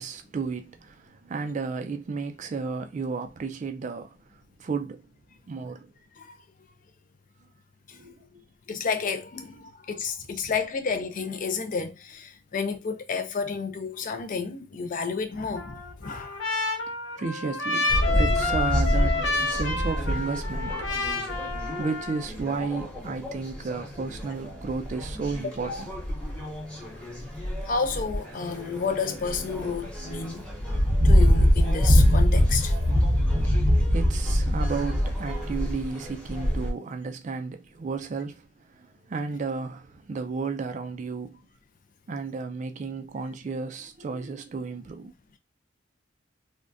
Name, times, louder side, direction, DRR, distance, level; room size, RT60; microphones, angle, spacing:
voice 1, 0.0-5.0 5.5-5.9 7.9-8.3 17.2-20.9 21.3-21.4 21.8-25.7 33.5-33.6 33.8-41.4 42.1-45.1, right 4 dB, 40° right, 0.3 m, -33 dB
voice 2, 8.7-16.8 25.4-25.8 27.6-30.4 31.0-32.7, left 5 dB, 45° left, 0.4 m, -31 dB
Trumpet, 15.6-22.3, left 3 dB, 80° left, 0.8 m, -29 dB
sound 1, 17.9-36.7, equal, 5° left, 0.9 m, -25 dB
3.4 x 2.2 x 2.5 m
head